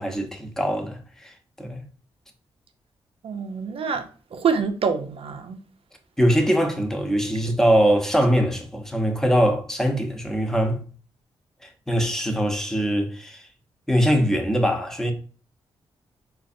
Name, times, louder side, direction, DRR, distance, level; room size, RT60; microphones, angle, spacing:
voice 1, 0.0-1.8 6.2-10.8 11.6-13.4 13.9-15.1, equal, 5° left, 0.8 m, -22 dB
voice 2, 3.2-5.6 7.2-7.5, right 5 dB, 65° right, 0.6 m, -27 dB
3.9 x 2.4 x 2.6 m
cardioid pair, 60°, 10 cm